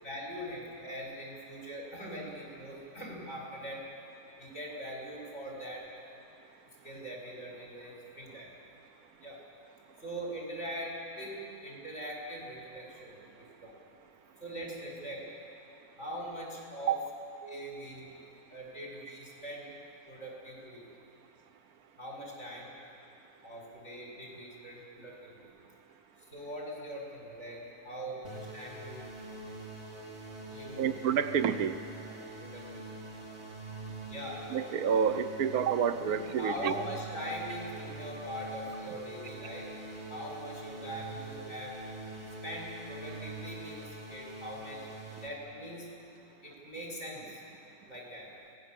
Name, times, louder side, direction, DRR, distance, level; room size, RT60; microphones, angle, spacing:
voice 1, 0.0-3.8 4.4-5.8 6.8-8.5 9.2-9.4 10.0-13.7 14.4-15.2 16.0-17.0 17.4-18.2 18.5-19.8 20.1-20.9 22.0-22.7 23.4-25.5 26.3-27.6 27.8-29.1 30.5-30.9 32.0-32.9 34.1-34.4 36.0-39.7 40.1-41.7 42.4-44.8 45.2-45.9 46.4-47.4 47.9-48.3, equal, 50° left, -2 dB, 5.8 m, -42 dB
sound 1, 28.2-45.3, right 2 dB, 45° right, 2.7 m, -44 dB
voice 2, 30.8-31.8 34.5-36.7, right 7 dB, 75° right, 10 dB, 1.3 m, -28 dB
24.5 x 19.0 x 7.5 m, 2.6 s
omnidirectional pair, 1.6 m